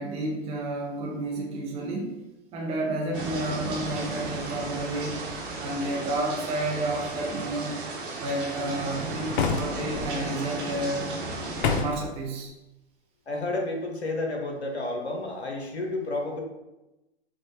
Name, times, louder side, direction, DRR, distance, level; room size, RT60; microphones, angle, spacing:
voice 1, 0.0-2.2 2.5-5.2 5.6-7.8 8.2-11.1 11.7-12.5, right 2 dB, 20° right, 0 dB, 0.5 m, -31 dB
sound 1, 3.1-11.8, right 2 dB, 50° right, 1.0 m, -34 dB
sound 2, 9.3-10.1 11.6-12.1, left 5 dB, 55° left, 0.5 m, -27 dB
voice 2, 13.3-16.4, left 2 dB, 85° left, 2 dB, 0.8 m, -31 dB
4.6 x 2.2 x 2.6 m, 0.98 s
figure-of-eight pair, 105°, 32 cm